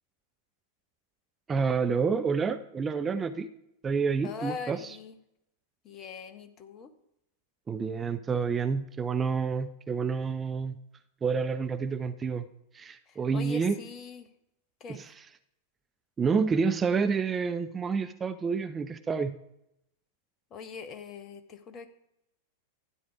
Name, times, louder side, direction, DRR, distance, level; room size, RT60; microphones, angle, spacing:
voice 1, 1.5-3.5 3.8-5.0 7.7-10.8 11.2-12.5 12.7-13.8 14.9-15.3 16.2-19.4, right 5 dB, 20° right, 9 dB, 0.6 m, -29 dB
voice 2, 4.2-5.2 5.8-6.9 13.1-14.3 14.8-15.0 20.5-21.9, left 5 dB, 30° left, 8 dB, 1.3 m, -41 dB
13.0 x 9.7 x 4.8 m, 0.81 s
figure-of-eight pair, 90°, 0 cm